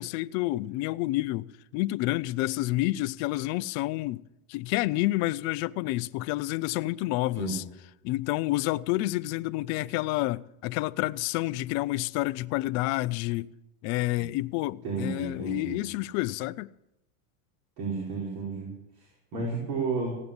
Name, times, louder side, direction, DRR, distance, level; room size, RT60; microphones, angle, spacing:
voice 1, 0.0-4.2 4.5-7.6 8.0-13.5 13.8-16.7, left 18 dB, 40° left, 0.4 m, -29 dB
voice 2, 14.8-15.8 17.8-18.7 19.0-20.2, right 4 dB, 70° right, 5.1 m, -32 dB
16.5 x 9.7 x 7.0 m
supercardioid pair, 135°, 43 cm